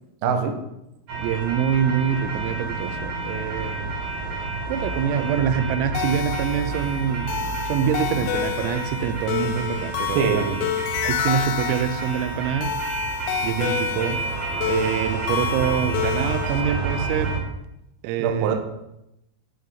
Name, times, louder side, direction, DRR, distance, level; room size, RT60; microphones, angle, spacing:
voice 1, 0.2-0.6 10.1-10.7 18.2-18.6, right 6 dB, 70° right, 4 dB, 2.4 m, -23 dB
sound 1, 1.1-17.4, right 3 dB, 40° right, 4.3 m, -30 dB
voice 2, 1.2-3.9 4.7-7.3 7.7-10.6 11.0-12.8 13.4-14.3 14.7-17.5 18.0-18.6, right 8 dB, 90° right, 10 dB, 3.5 m, -25 dB
sound 2, 5.9-16.6, left 11 dB, 85° left, 3.5 m, -29 dB
8.9 x 6.6 x 7.0 m, 0.86 s
omnidirectional pair, 6.0 m